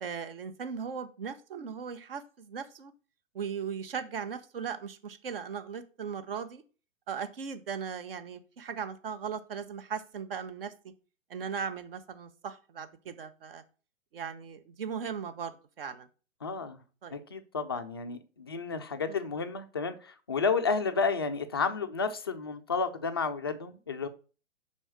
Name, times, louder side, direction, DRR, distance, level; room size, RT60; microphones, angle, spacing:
voice 1, 0.0-2.9 3.3-6.6 7.1-10.7 11.3-13.6 14.1-16.1 17.0-17.2 19.1-19.2, right 6 dB, 45° right, 10 dB, 1.0 m, -38 dB
voice 2, 16.4-16.8 17.1-24.1, left 4 dB, 20° left, 7 dB, 0.3 m, -31 dB
5.6 x 4.5 x 6.2 m, 0.36 s
figure-of-eight pair, 120°, 38 cm